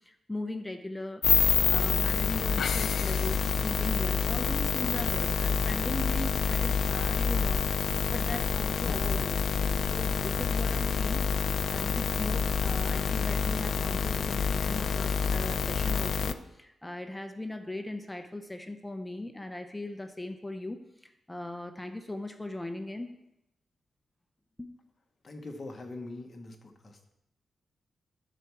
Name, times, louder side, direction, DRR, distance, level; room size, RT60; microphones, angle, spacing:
voice 1, 0.0-23.1 24.6-24.7, left 1 dB, 10° left, 7 dB, 0.6 m, -39 dB
sound 1, 1.2-16.3, left 6 dB, 65° left, 0.4 m, -27 dB
voice 2, 25.2-27.0, left 2 dB, 30° left, 3 dB, 1.1 m, -42 dB
10.0 x 4.6 x 6.1 m, 0.88 s
wide cardioid pair, 140°, 0 cm